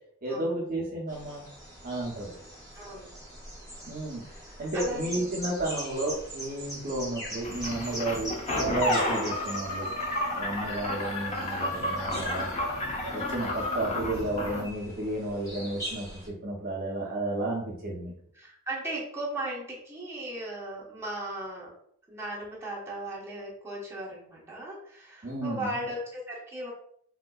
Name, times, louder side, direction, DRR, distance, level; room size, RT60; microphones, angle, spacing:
voice 1, 0.2-1.5 1.8-2.4 3.9-4.2 4.6-9.9 10.4-12.5 13.1-18.1 25.2-25.8, right 1 dB, 45° right, -4 dB, 0.7 m, -32 dB
sound 1, 1.1-16.3, equal, 15° left, 1.0 m, -42 dB
voice 2, 2.7-3.1 4.2-5.3 7.9-8.0 18.3-21.7 22.1-26.7, right 1 dB, 15° right, -6 dB, 1.0 m, -37 dB
sound 2, 7.4-14.7, left 1 dB, 35° left, 0.6 m, -31 dB
3.6 x 2.6 x 2.3 m, 0.66 s
head